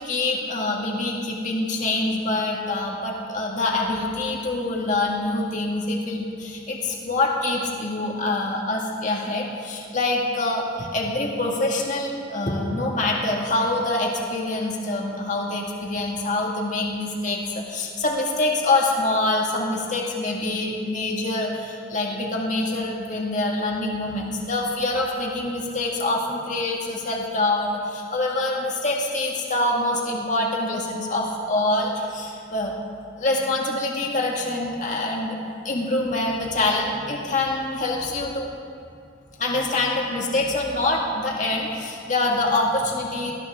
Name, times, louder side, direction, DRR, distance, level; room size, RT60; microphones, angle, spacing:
voice 1, 0.0-32.7 33.2-35.4 35.6-38.5 39.4-43.3, left 2 dB, 40° left, -1 dB, 1.9 m, -25 dB
19.5 x 18.5 x 3.6 m, 2.4 s
head